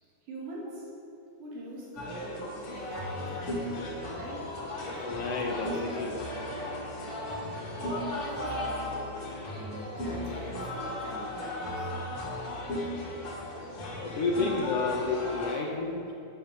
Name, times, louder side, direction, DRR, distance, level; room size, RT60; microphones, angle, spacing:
voice 1, 0.2-0.9 1.4-4.6 8.1-9.1 9.6-11.9, right 1 dB, 80° right, -3 dB, 3.6 m, -44 dB
sound 1, 2.0-15.5, left 1 dB, 50° left, 2.6 m, -35 dB
voice 2, 5.0-6.2 14.0-16.1, left 4 dB, 65° left, 0 dB, 1.5 m, -31 dB
10.5 x 8.2 x 6.5 m, 2.7 s
omnidirectional pair, 3.6 m